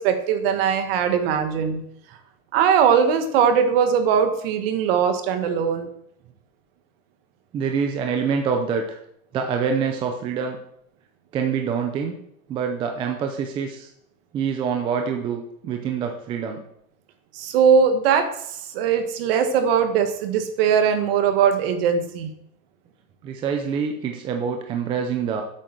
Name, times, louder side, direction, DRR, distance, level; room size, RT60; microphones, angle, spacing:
voice 1, 0.0-1.8 2.5-5.9 17.3-18.3 18.7-22.3, right 7 dB, 45° right, 8 dB, 1.7 m, -20 dB
voice 2, 7.5-9.0 9.3-10.6 11.3-12.2 12.5-13.9 14.3-16.6 23.2-25.4, right 6 dB, 10° right, 3 dB, 0.5 m, -26 dB
9.5 x 8.5 x 6.0 m, 0.74 s
supercardioid pair, 160°, 42 cm